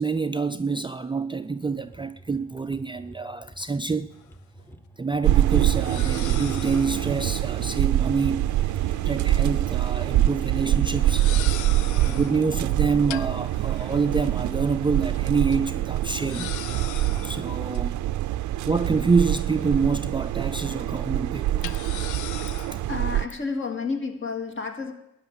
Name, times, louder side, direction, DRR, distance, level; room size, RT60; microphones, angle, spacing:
voice 1, 0.0-4.1 5.0-8.5 9.0-11.6 11.9-16.6 17.2-18.0 18.6-21.8 22.7-22.8, right 4 dB, 15° right, 0.5 m, -26 dB
sound 1, 1.7-13.3, right 1 dB, 5° left, 1.2 m, -49 dB
sound 2, 4.1-4.2 5.7-7.2 8.6-9.7 10.0-10.2 11.0-12.5 13.1-14.7 15.1-15.2 15.5-15.6 16.2-17.8 18.7-20.1 20.4-20.5 21.6-22.9, left 13 dB, 75° left, 0.5 m, -40 dB
sound 3, 5.2-23.3, right 14 dB, 75° right, 0.6 m, -25 dB
voice 2, 22.9-24.9, left 4 dB, 40° left, 2.4 m, -31 dB
13.5 x 10.0 x 8.3 m
cardioid pair, 90°, 30 cm